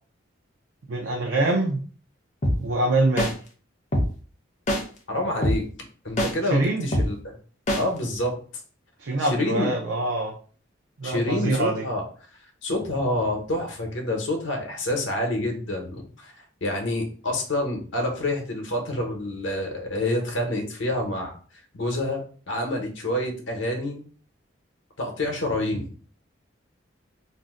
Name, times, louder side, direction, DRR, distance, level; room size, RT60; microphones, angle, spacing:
voice 1, 0.9-1.8 2.6-3.3 6.4-6.9 9.0-10.3 11.0-11.8, right 2 dB, 70° right, -1 dB, 0.5 m, -24 dB
sound 1, 2.4-2.6 3.2-3.3 3.9-4.1 4.7-4.8 5.4-5.6 6.2-6.3 6.9-7.1 7.7-7.8, equal, 35° left, 0.6 m, -22 dB
voice 2, 5.1-5.6 6.0-7.1 7.7-8.4 9.2-9.7 11.0-12.0 12.6-16.3 16.6-21.3 21.7-24.0 25.0-25.9, left 1 dB, 75° left, 2 dB, 0.8 m, -27 dB
2.6 x 2.1 x 3.6 m, 0.41 s
head